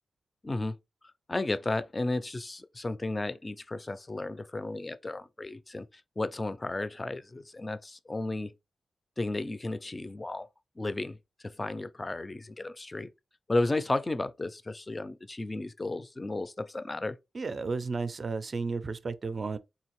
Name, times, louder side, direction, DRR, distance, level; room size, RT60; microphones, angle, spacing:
voice 1, 0.4-0.8 1.3-5.9 6.2-8.5 9.2-10.5 10.8-11.2 11.6-13.1 13.5-17.2, left 2 dB, 25° left, 0.4 m, -33 dB
voice 2, 17.3-19.6, right 4 dB, 45° right, 0.4 m, -33 dB
3.8 x 2.7 x 2.9 m
wide cardioid pair, 95°, 0 cm